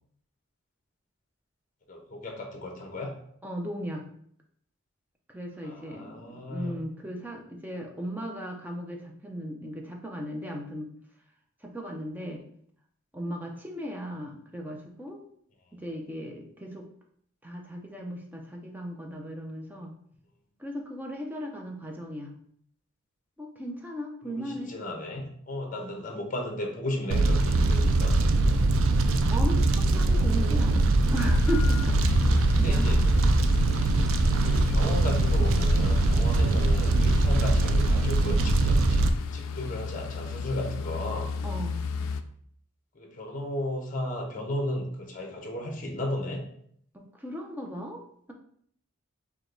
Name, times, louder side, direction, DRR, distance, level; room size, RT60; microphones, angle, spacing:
voice 1, 1.9-3.2 5.6-6.7 24.2-28.2 30.0-30.7 32.5-33.0 34.4-41.3 42.9-46.4, left 1 dB, 40° left, 1 dB, 0.9 m, -35 dB
voice 2, 3.4-4.0 5.3-10.9 11.6-12.4 13.1-15.2 15.7-16.9 17.4-19.9 20.6-22.3 23.4-24.7 25.7-25.9 29.3-32.0 32.3-32.9 41.4-41.8 46.9-48.0, equal, 10° right, 1 dB, 0.5 m, -36 dB
Fire, 27.1-39.1, right 2 dB, 65° right, 0.4 m, -22 dB
sound 1, 31.2-42.2, left 5 dB, 75° left, 0.3 m, -33 dB
4.9 x 2.3 x 3.8 m, 0.65 s
head